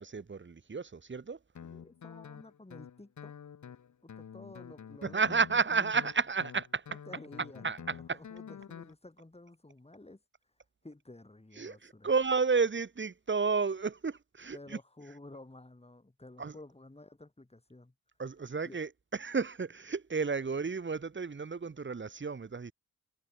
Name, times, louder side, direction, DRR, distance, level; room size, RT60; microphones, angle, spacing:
voice 1, 0.0-1.4 5.0-6.8 7.6-8.2 11.6-14.8 16.4-16.5 18.2-22.7, right 4 dB, 30° right, 1.8 m, -32 dB
Guitar, 1.6-8.9, left 7 dB, 50° left, 1.8 m, -48 dB
voice 2, 1.6-3.5 4.0-5.4 6.9-10.2 10.8-12.1 14.5-17.9 18.6-18.8, left 2 dB, 15° left, 8.0 m, -52 dB
supercardioid pair, 55°, 37 cm